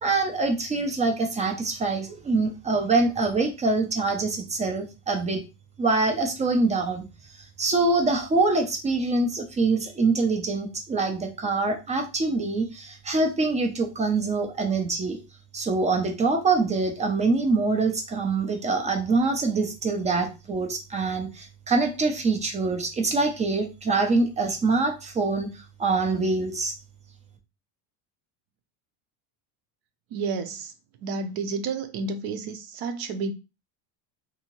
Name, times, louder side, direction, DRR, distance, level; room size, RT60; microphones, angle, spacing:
voice 1, 0.0-5.4 5.8-7.0 7.6-15.2 15.5-25.5 25.8-26.7, right 3 dB, 15° right, 0.4 m, -24 dB
voice 2, 30.1-30.7 31.0-33.3, right 4 dB, 55° right, 0.6 m, -30 dB
2.7 x 2.7 x 2.9 m
cardioid pair, 135°, 45 cm